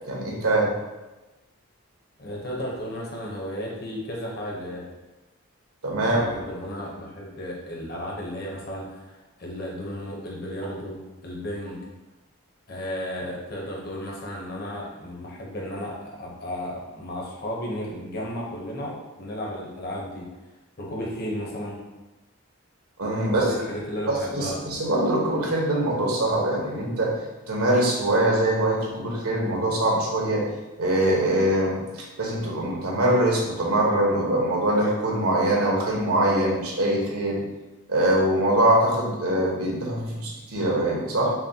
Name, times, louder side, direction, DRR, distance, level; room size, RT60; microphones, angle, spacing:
voice 1, 0.1-0.7 5.8-6.2 23.0-23.4 24.1-27.1 27.5-30.4 30.8-31.8 32.2-37.4 37.9-41.3, right 1 dB, 80° right, -3 dB, 1.0 m, -23 dB
voice 2, 2.2-4.9 6.0-11.8 12.7-20.2 20.8-21.8 23.2-24.6, equal, 45° left, -3 dB, 0.8 m, -34 dB
5.8 x 2.2 x 2.8 m, 1.1 s
head